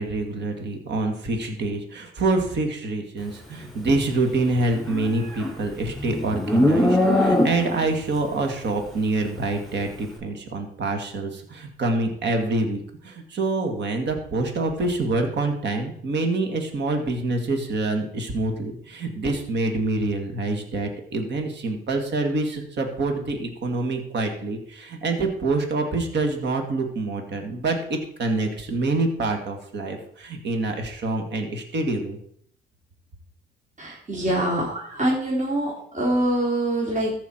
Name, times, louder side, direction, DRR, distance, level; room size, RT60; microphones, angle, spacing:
voice 1, 0.0-32.2, right 2 dB, 60° right, 4 dB, 2.1 m, -26 dB
Livestock farm animals working animals, 4.7-7.9, left 1 dB, ahead, 4.6 m, -21 dB
voice 2, 33.8-37.1, right 1 dB, 40° right, -4 dB, 3.7 m, -24 dB
14.5 x 5.8 x 4.5 m, 0.63 s
cardioid pair, 90°, 20 cm